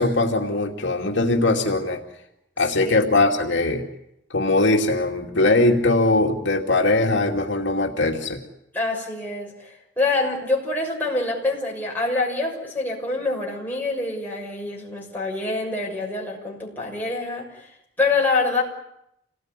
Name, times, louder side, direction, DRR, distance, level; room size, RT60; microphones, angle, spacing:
voice 1, 0.0-2.0 2.6-3.8 4.3-8.4, left 2 dB, 70° left, 1 dB, 2.6 m, -20 dB
voice 2, 8.7-17.4 18.0-18.6, left 3 dB, 10° left, -3 dB, 6.3 m, -25 dB
27.5 x 19.5 x 9.8 m, 0.83 s
head